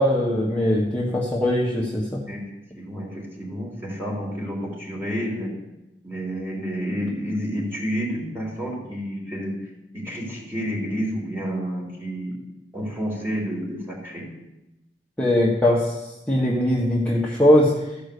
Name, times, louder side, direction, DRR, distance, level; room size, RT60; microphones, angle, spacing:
voice 1, 0.0-2.2 15.2-17.7, left 1 dB, 10° left, -5 dB, 1.4 m, -21 dB
voice 2, 2.8-5.5 6.0-9.6 9.9-12.3 12.7-14.2, equal, 15° right, -3 dB, 3.5 m, -29 dB
14.5 x 5.5 x 6.8 m, 0.97 s
head